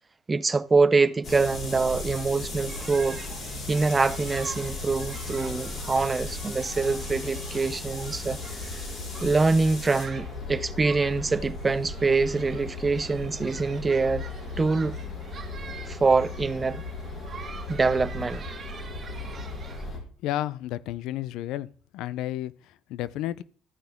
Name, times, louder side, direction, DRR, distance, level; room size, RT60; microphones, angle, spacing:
voice 1, 0.3-3.2 3.7-8.8 9.2-14.2 14.6-15.0 15.9-16.8 17.7-18.4, right 4 dB, 25° right, 0.5 m, -25 dB
sound 1, 1.2-20.0, left 2 dB, 45° left, 4.1 m, -36 dB
sound 2, 2.7-19.8, right 6 dB, 45° right, 1.8 m, -46 dB
voice 2, 19.9-21.7 21.9-23.4, left 14 dB, 75° left, 0.5 m, -32 dB
13.5 x 5.7 x 3.5 m
supercardioid pair, 85°, 0 cm